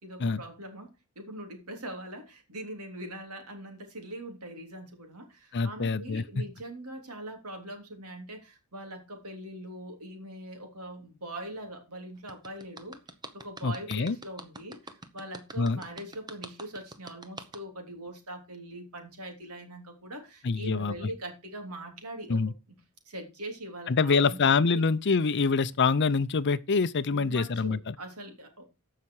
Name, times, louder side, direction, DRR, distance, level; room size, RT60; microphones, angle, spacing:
voice 1, 0.0-13.0 13.3-22.4 23.1-24.4 24.7-24.8 27.1-28.6, right 1 dB, 85° right, 3.3 m, -42 dB
voice 2, 5.5-6.2 13.6-14.2 15.6-15.8 20.4-20.9 22.3-22.5 23.9-27.9, left 4 dB, 50° left, 0.6 m, -25 dB
sound 1, 12.3-17.6, right 2 dB, 20° right, 1.0 m, -44 dB
14.5 x 5.8 x 4.8 m
head